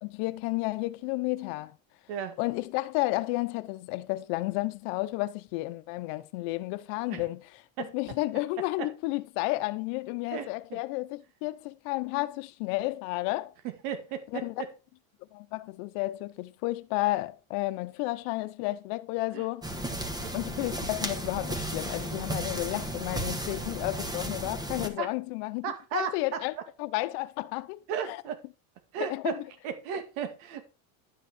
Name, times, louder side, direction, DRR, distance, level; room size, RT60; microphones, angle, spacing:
voice 1, 0.0-1.8 2.4-7.6 7.9-13.5 14.4-14.5 15.3-19.7 20.3-25.6 25.9-28.2 29.0-29.4, left 20 dB, 70° left, 1.0 m, -32 dB
voice 2, 10.3-10.8 13.8-14.4 19.3-19.4 25.0-25.1 25.6-26.4 27.9-28.4 28.9-30.6, right 8 dB, 75° right, 2.2 m, -35 dB
sound 1, 19.6-24.9, right 1 dB, 10° right, 1.5 m, -34 dB
11.5 x 6.1 x 4.4 m
cardioid pair, 145°, 42 cm